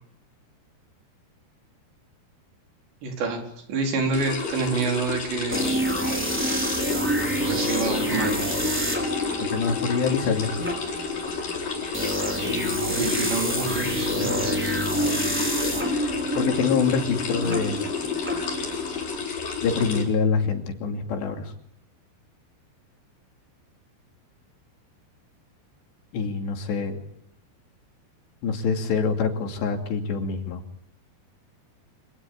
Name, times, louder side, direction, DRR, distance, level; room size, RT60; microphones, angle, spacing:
voice 1, 3.0-3.4 3.7-5.6 7.3-8.4 12.9-14.7, right 4 dB, 90° right, 2 dB, 6.6 m, -27 dB
sound 1, 4.1-20.0, left 6 dB, 55° left, 5.6 m, -31 dB
sound 2, 5.5-19.2, right 1 dB, 5° right, 3.7 m, -28 dB
voice 2, 9.4-10.5 15.8-17.8 19.6-21.5 26.1-27.0 28.4-30.6, left 5 dB, 80° left, 4 dB, 4.9 m, -25 dB
26.5 x 18.0 x 8.8 m, 0.72 s
omnidirectional pair, 4.9 m